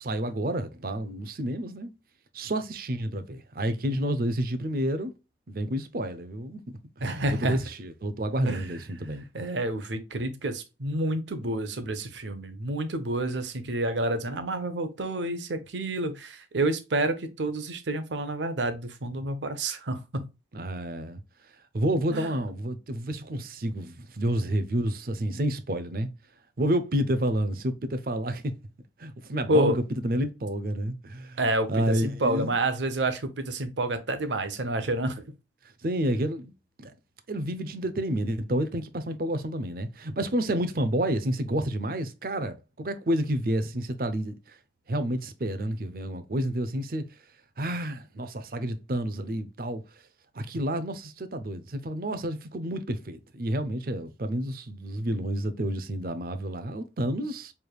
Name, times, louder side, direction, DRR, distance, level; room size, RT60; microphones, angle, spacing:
voice 1, 0.0-1.9 2.3-5.1 5.5-6.6 7.0-9.3 20.5-21.2 21.7-26.1 26.6-28.5 29.0-31.4 31.7-32.5 35.8-36.5 36.8-36.9 37.3-44.3 44.9-47.0 47.6-49.8 50.3-57.5, right 1 dB, 50° right, 0.5 m, -29 dB
voice 2, 7.0-7.6 8.5-8.6 9.3-20.3 22.1-22.4 29.5-29.8 31.4-35.2, right 1 dB, 85° right, 0.8 m, -29 dB
4.7 x 3.4 x 2.3 m
head